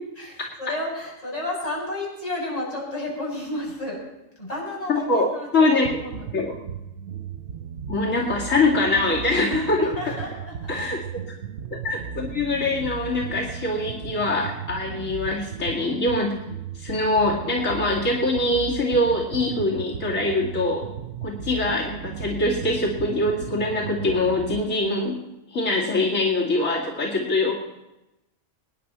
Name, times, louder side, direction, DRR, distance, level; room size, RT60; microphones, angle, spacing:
voice 1, 0.6-4.0 4.4-6.3 9.5-10.8, left 1 dB, 30° left, -5 dB, 7.4 m, -32 dB
voice 2, 4.9-5.3 5.5-5.9 6.3-6.6 7.9-9.9 10.7-11.0 11.7-16.3 16.7-20.9 21.2-25.2 25.5-27.5, left 2 dB, 80° left, -2 dB, 2.8 m, -23 dB
sound 1, 5.8-24.6, right 7 dB, 65° right, 0.9 m, -36 dB
25.0 x 10.5 x 4.4 m, 0.95 s
omnidirectional pair, 1.3 m